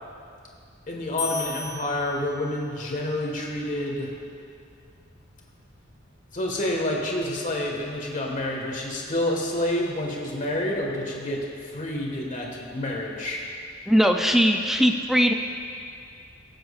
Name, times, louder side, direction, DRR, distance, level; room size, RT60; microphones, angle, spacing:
voice 1, 0.9-4.1 6.3-13.4, left 1 dB, 40° left, -1 dB, 1.6 m, -28 dB
sound 1, 1.2-2.8, left 6 dB, 80° left, 1.6 m, -36 dB
voice 2, 13.9-15.3, equal, ahead, 3 dB, 0.4 m, -20 dB
21.0 x 7.5 x 2.5 m, 2.4 s
head